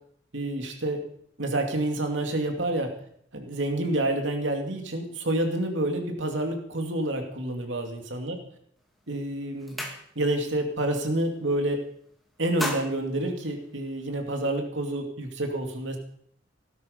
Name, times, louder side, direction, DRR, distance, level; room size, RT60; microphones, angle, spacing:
voice 1, 0.3-1.0 1.4-2.9 3.3-8.3 9.1-9.8 10.2-11.8 12.4-16.0, right 1 dB, 75° right, 3 dB, 2.6 m, -28 dB
sound 1, 8.8-9.0 9.3-10.5 10.8-11.1 11.4-12.0 12.3-14.2, equal, ahead, 2.8 m, -37 dB
18.0 x 12.0 x 5.4 m, 0.64 s
head